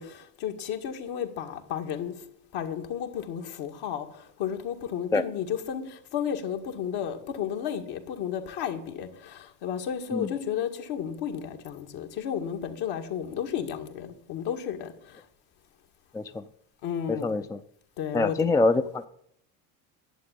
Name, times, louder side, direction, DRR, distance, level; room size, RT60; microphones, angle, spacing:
voice 1, 0.0-2.1 2.5-14.9 16.8-17.3 18.0-18.4, left 8 dB, 65° left, 2.1 m, -33 dB
voice 2, 17.1-17.6 18.1-19.0, left 3 dB, 10° left, 0.4 m, -25 dB
11.5 x 8.3 x 9.1 m
supercardioid pair, 110°, 42 cm